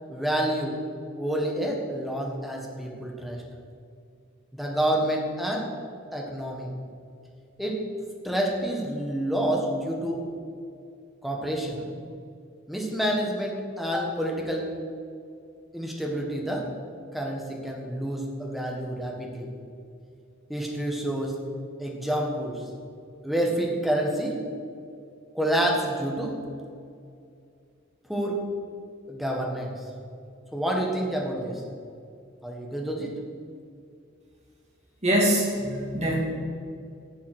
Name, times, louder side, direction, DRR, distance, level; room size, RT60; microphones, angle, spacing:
voice 1, 0.1-0.8 1.1-3.4 4.5-5.7 6.1-6.7 7.6-7.8 8.2-10.3 11.2-11.9 12.7-14.7 15.7-16.7 17.1-19.5 20.5-21.4 21.8-22.6 23.2-24.4 25.3-26.4 28.1-28.4 29.1-29.8 30.5-31.6 32.4-33.2, right 1 dB, ahead, -1 dB, 1.6 m, -28 dB
voice 2, 35.0-36.2, right 1 dB, 30° right, -3 dB, 2.8 m, -23 dB
11.0 x 7.3 x 8.0 m, 2.4 s
head